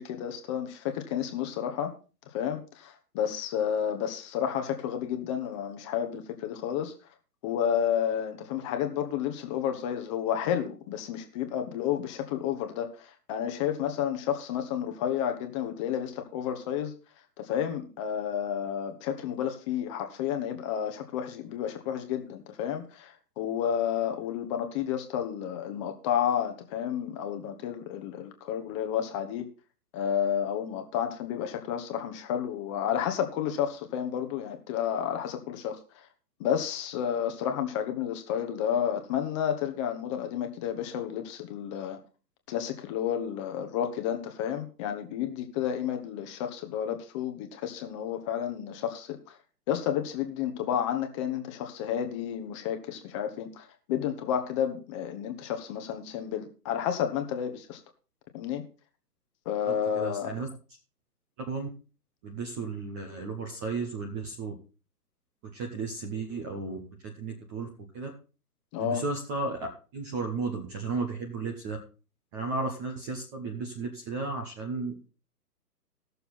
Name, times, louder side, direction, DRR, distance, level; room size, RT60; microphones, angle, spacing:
voice 1, 0.0-1.9 2.3-6.9 7.4-16.9 17.4-29.5 29.9-35.8 36.4-42.0 42.5-49.2 49.7-57.8 58.3-58.6 59.4-60.3 68.7-69.0, left 9 dB, 20° left, 5 dB, 1.0 m, -31 dB
voice 2, 59.7-60.5 61.5-61.7 62.2-64.5 65.5-67.7 67.9-68.1 68.8-69.6 69.9-71.8 72.3-75.1, right 3 dB, 10° right, 2 dB, 0.7 m, -34 dB
17.0 x 6.8 x 4.2 m, 0.35 s
figure-of-eight pair, 130°, 50 cm